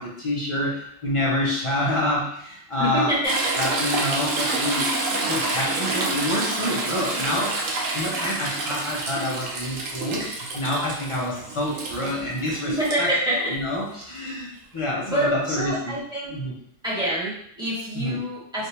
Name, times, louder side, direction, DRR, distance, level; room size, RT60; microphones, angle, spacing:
voice 1, 0.0-3.2 3.5-4.9 5.3-7.6 7.9-15.9 16.3-16.5 17.9-18.2, left 1 dB, 30° left, -5 dB, 0.6 m, -27 dB
voice 2, 2.8-3.6 12.7-13.5 15.0-16.3 16.8-18.7, equal, 5° right, -9 dB, 1.1 m, -26 dB
Toilet flush / Trickle dribble, 3.2-13.0 14.8-14.9, right 2 dB, 85° right, 1.0 m, -28 dB
3.2 x 2.5 x 2.8 m, 0.68 s
omnidirectional pair, 1.3 m